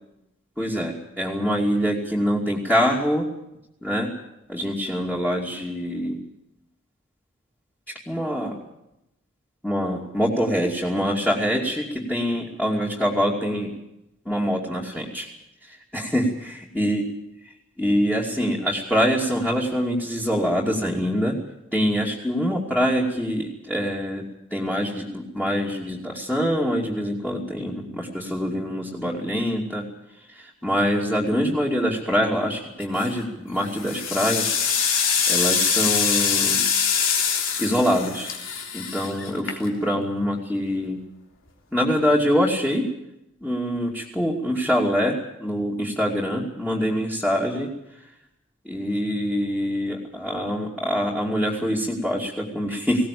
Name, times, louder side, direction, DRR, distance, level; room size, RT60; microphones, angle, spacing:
voice 1, 0.6-3.3 3.8-4.1 4.5-6.2 8.1-8.6 9.6-13.7 14.2-15.3 15.6-16.2 16.7-17.1 17.8-21.4 21.7-29.9 30.3-36.6 37.6-38.3 38.7-41.0 41.7-42.9 43.4-47.7 48.6-53.1, equal, 5° left, -4 dB, 2.7 m, -24 dB
sound 1, 32.8-33.2 33.7-40.0, left 6 dB, 80° left, 3.5 m, -24 dB
20.0 x 18.0 x 8.5 m, 0.87 s
head